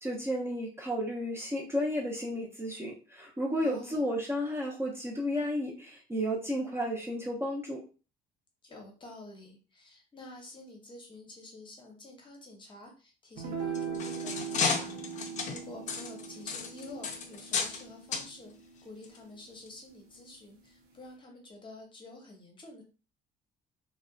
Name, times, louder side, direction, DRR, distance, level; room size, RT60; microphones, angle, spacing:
voice 1, 0.0-7.8, equal, 15° right, -2 dB, 0.5 m, -32 dB
voice 2, 3.6-4.1 8.6-18.5 18.8-22.8, left 2 dB, 30° left, 1 dB, 0.8 m, -49 dB
sound 1, 13.4-19.9, right 6 dB, 70° right, 0.6 m, -41 dB
sound 2, 13.6-17.8 18.1-18.3 19.0-19.2 19.7-19.8, left 5 dB, 45° left, 0.4 m, -33 dB
2.5 x 2.1 x 2.3 m, 0.35 s
cardioid pair, 110°, 17 cm